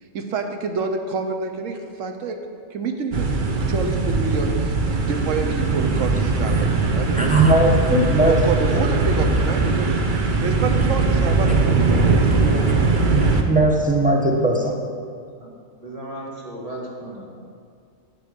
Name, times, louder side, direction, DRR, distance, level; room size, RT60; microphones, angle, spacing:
voice 1, 0.1-2.4 2.7-7.7 8.3-12.9, right 4 dB, 70° right, 5 dB, 1.2 m, -28 dB
sound 1, 3.1-13.4, right 3 dB, 45° right, 0.8 m, -20 dB
voice 2, 7.1-8.8 11.5-11.6 13.5-14.7, right 1 dB, 5° right, 0 dB, 0.9 m, -19 dB
voice 3, 15.8-17.4, right 1 dB, 25° right, -4 dB, 1.8 m, -35 dB
10.0 x 6.8 x 5.2 m, 2.2 s
omnidirectional pair, 1.4 m